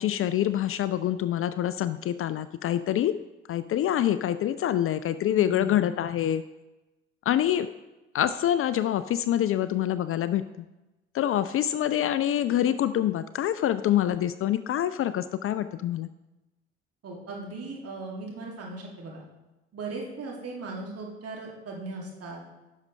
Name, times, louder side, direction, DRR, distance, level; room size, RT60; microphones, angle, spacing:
voice 1, 0.0-3.2 3.5-6.4 7.3-7.7 8.1-10.7 11.1-16.1, left 11 dB, 40° left, 13 dB, 0.4 m, -26 dB
voice 2, 5.3-5.9 17.0-19.2 19.7-22.4, right 3 dB, 45° right, -1 dB, 2.5 m, -38 dB
10.5 x 6.4 x 3.3 m, 1.0 s
hypercardioid pair, 55°, 34 cm